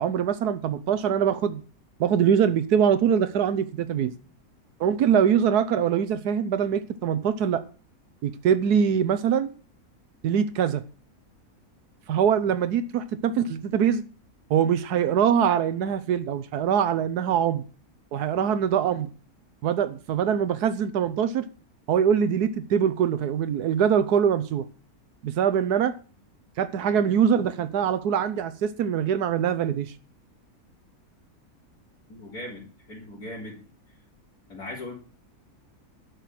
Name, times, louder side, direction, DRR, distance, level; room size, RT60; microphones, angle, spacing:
voice 1, 0.0-1.6 2.0-4.1 4.8-7.6 8.2-9.5 10.2-10.8 12.1-14.0 14.5-17.6 18.1-19.1 19.6-21.5 21.9-24.6 25.2-25.9 26.6-30.0, right 8 dB, 85° right, 11 dB, 1.4 m, -23 dB
voice 2, 32.1-33.6 34.5-34.9, left 1 dB, 85° left, -7 dB, 4.4 m, -38 dB
11.5 x 6.6 x 9.2 m, 0.39 s
omnidirectional pair, 1.6 m